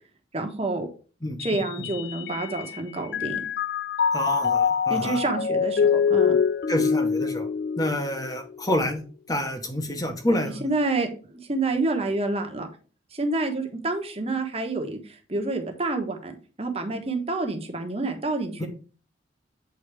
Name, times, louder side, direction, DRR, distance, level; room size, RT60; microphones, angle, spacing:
voice 1, 0.3-0.9 1.4-3.4 4.9-6.4 10.3-12.7 13.1-16.3 16.6-18.7, right 2 dB, 30° right, 4 dB, 1.3 m, -28 dB
voice 2, 1.2-1.6 4.1-5.2 6.7-7.5 7.8-9.0 9.3-10.6 18.6-18.7, equal, 20° left, 5 dB, 1.3 m, -28 dB
Mallet percussion, 1.4-2.8 3.1-8.5, left 6 dB, 60° left, 0.4 m, -25 dB
8.3 x 4.1 x 4.8 m, 0.37 s
head